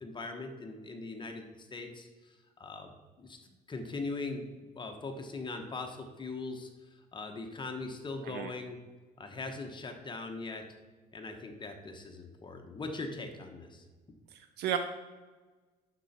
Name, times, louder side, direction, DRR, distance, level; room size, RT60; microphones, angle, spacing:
voice 1, 0.0-2.9 3.2-3.4 3.7-4.5 4.8-8.8 9.2-10.7 11.1-13.9, left 3 dB, 25° left, 5 dB, 1.1 m, -40 dB
voice 2, 14.3-14.8, right 10 dB, 75° right, 8 dB, 0.6 m, -33 dB
9.9 x 7.0 x 4.3 m, 1.3 s
cardioid pair, 110°, 17 cm